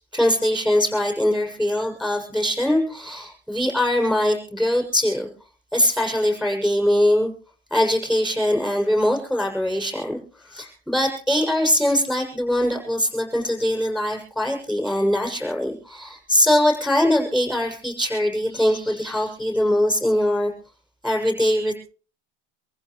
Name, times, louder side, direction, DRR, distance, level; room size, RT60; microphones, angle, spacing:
voice 1, 0.0-5.3 5.7-7.3 7.7-20.5 21.0-21.8, left 1 dB, ahead, 3 dB, 7.0 m, -22 dB
26.0 x 15.0 x 3.2 m, 0.39 s
cardioid pair, 165°, 39 cm